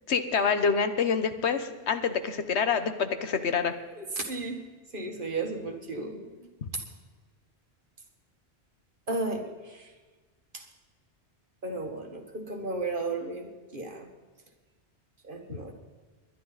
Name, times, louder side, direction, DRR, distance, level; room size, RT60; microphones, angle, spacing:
voice 1, 0.1-3.7 6.6-6.7, left 6 dB, 80° left, 9 dB, 1.3 m, -27 dB
voice 2, 3.9-4.7 4.9-6.3 6.7-6.8 9.1-9.9 10.5-10.7 11.6-14.1 15.2-15.7, right 3 dB, 50° right, 4 dB, 1.9 m, -34 dB
21.5 x 11.0 x 4.1 m, 1.3 s
omnidirectional pair, 1.1 m